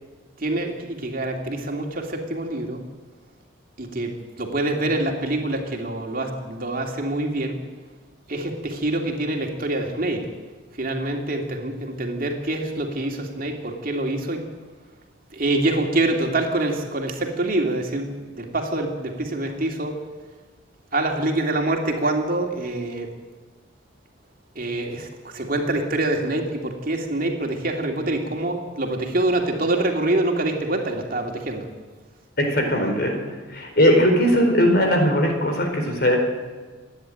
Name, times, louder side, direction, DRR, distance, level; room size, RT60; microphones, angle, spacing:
voice 1, 0.4-2.8 3.8-7.6 8.3-10.3 10.7-14.5 15.3-20.0 20.9-23.1 24.5-31.7, right 2 dB, 45° right, 2 dB, 2.7 m, -25 dB
voice 2, 32.4-33.2 33.5-36.2, equal, 50° left, 4 dB, 4.5 m, -19 dB
28.0 x 10.5 x 9.1 m, 1.4 s
head